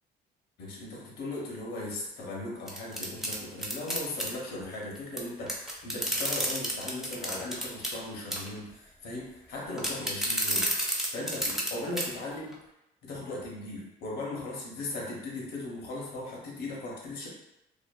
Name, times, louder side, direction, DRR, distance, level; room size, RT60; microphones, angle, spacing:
voice 1, 0.6-10.7 11.1-12.6 13.0-17.3, left 2 dB, 75° left, -2 dB, 0.8 m, -38 dB
sound 1, 2.7-4.3 5.2-5.3 5.5-8.0 8.3-8.6 9.8-11.7 12.0-12.1 12.5-12.6, equal, ahead, 0.5 m, -30 dB
2.5 x 2.4 x 2.2 m, 0.88 s
cardioid pair, 110°, 17 cm